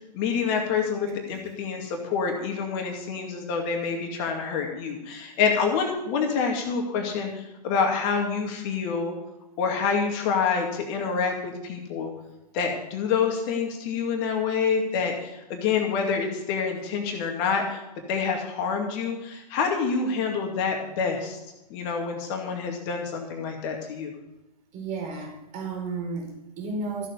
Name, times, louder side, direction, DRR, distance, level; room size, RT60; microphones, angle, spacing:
voice 1, 0.1-9.1 9.6-12.1 12.5-17.8 18.1-21.4 21.7-24.1, left 5 dB, 40° left, 2 dB, 2.3 m, -27 dB
voice 2, 24.7-27.1, right 3 dB, 35° right, 1 dB, 4.5 m, -33 dB
14.5 x 7.6 x 7.1 m, 0.99 s
figure-of-eight pair, 110°, 21 cm